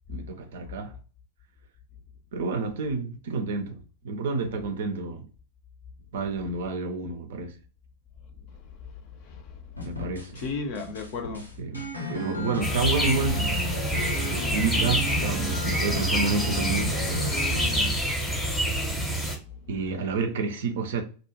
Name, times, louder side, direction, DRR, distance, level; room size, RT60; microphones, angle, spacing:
voice 1, 0.1-1.0 2.3-5.2 6.1-7.6 9.8-10.4 11.6-13.5 14.3-17.4 19.7-21.0, right 4 dB, 60° right, 0.5 m, -29 dB
voice 2, 9.2-9.7 10.3-11.5 19.0-19.7, left 4 dB, 45° left, 0.5 m, -36 dB
sound 1, 9.8-10.5 10.7-17.9, left 2 dB, 90° left, 0.7 m, -34 dB
sound 2, 12.6-19.4, equal, 5° left, 0.7 m, -27 dB
2.3 x 2.1 x 2.9 m
figure-of-eight pair, 90°, 0 cm